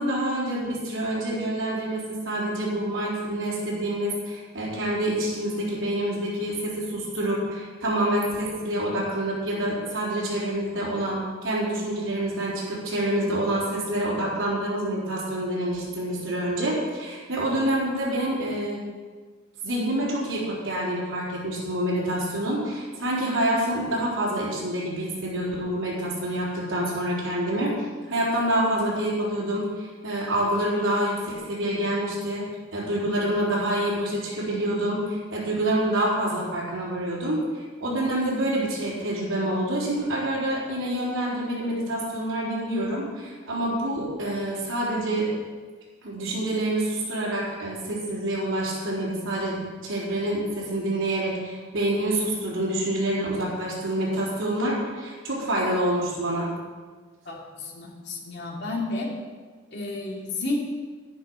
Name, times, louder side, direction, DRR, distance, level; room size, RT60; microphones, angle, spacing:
voice 1, 0.0-18.8 19.6-27.7 28.1-32.4 32.7-45.3 46.0-56.5, right 1 dB, 70° right, -7 dB, 4.1 m, -27 dB
voice 2, 57.2-59.1 59.7-60.6, left 2 dB, 55° left, -3 dB, 2.9 m, -31 dB
10.5 x 10.5 x 6.3 m, 1.5 s
head